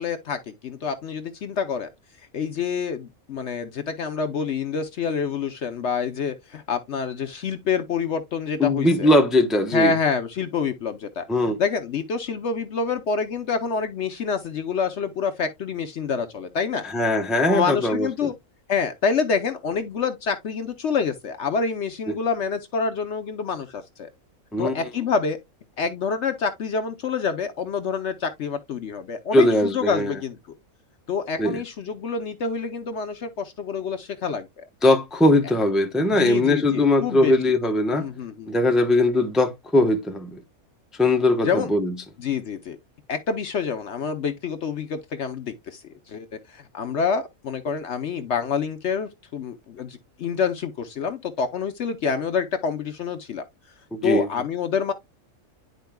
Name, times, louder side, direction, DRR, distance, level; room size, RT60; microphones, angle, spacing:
voice 1, 0.0-1.9 2.3-9.1 9.7-11.2 11.6-16.9 17.5-18.3 18.7-24.1 24.6-25.4 25.8-30.4 31.1-34.6 36.1-37.3 37.9-38.5 41.4-41.7 42.2-42.8 43.1-53.4 54.0-54.9, left 5 dB, 60° left, 0.9 m, -27 dB
voice 2, 8.6-9.9 11.3-11.6 16.8-18.3 24.5-24.7 29.3-30.1 31.4-31.6 34.8-38.0 38.5-40.4 41.0-41.9 53.9-54.3, left 1 dB, ahead, 0.7 m, -20 dB
10.5 x 4.5 x 2.2 m
omnidirectional pair, 1.5 m